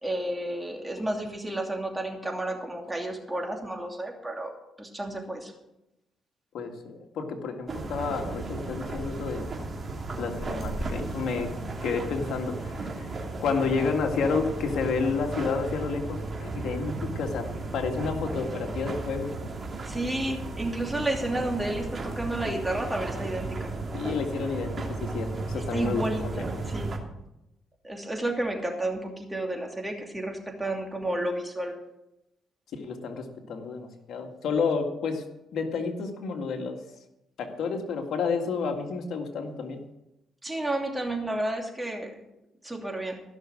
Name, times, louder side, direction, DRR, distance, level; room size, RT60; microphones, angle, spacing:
voice 1, 0.0-4.5 4.8-5.5 19.8-23.7 25.5-26.9 27.8-31.7 40.4-42.2 42.6-43.2, right 1 dB, 10° right, 2 dB, 2.7 m, -31 dB
voice 2, 6.5-9.5 10.2-11.5 11.8-13.1 13.4-17.5 17.7-19.3 23.9-24.7 25.0-26.3 32.8-35.2 35.5-36.8 37.4-39.8, left 5 dB, 75° left, 4 dB, 2.0 m, -30 dB
sound 1, 7.7-27.0, right 3 dB, 35° right, 2.8 m, -34 dB
15.5 x 6.4 x 7.8 m, 0.89 s
cardioid pair, 90°, 0 cm